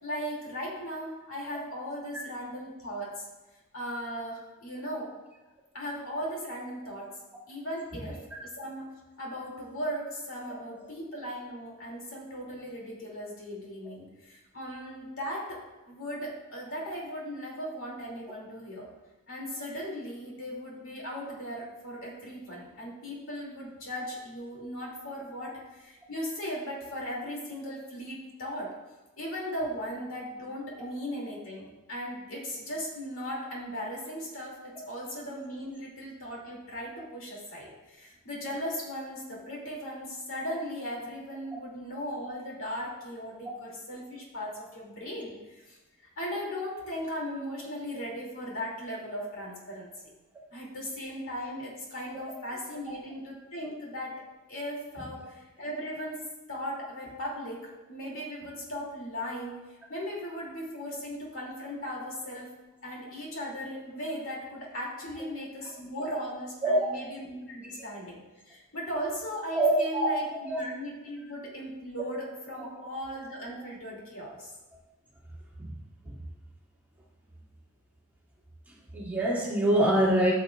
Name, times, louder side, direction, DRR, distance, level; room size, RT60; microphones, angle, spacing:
voice 1, 0.0-3.3 3.7-5.1 5.7-7.1 7.5-8.9 9.2-18.9 19.3-28.7 29.2-45.8 46.2-49.9 50.5-54.2 54.5-56.2 56.5-62.5 62.8-68.2 68.4-74.5, equal, 65° left, -3 dB, 2.5 m, -37 dB
voice 2, 66.6-67.1 69.5-70.1 70.4-70.6 72.6-72.7 75.6-75.7 76.0-76.2 78.9-80.3, right 1 dB, 5° right, -7 dB, 2.1 m, -25 dB
13.5 x 6.5 x 2.3 m, 1.1 s
head